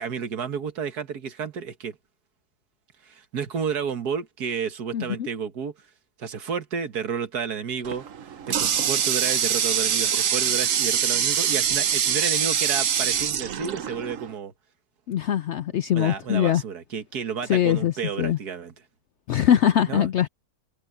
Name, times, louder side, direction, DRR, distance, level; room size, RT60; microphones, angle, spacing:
voice 1, 0.0-2.0 3.0-5.7 6.2-8.1 8.5-14.5 15.9-18.7 19.9-20.1, right 6 dB, 80° right, 2.0 m, -31 dB
voice 2, 4.9-5.3 15.1-16.6 17.5-17.9 18.2-18.4 19.3-20.3, left 10 dB, 70° left, 0.6 m, -22 dB
Water tap faucet, 7.8-14.3, right 8 dB, 60° right, 1.3 m, -24 dB
omnidirectional pair, 1.7 m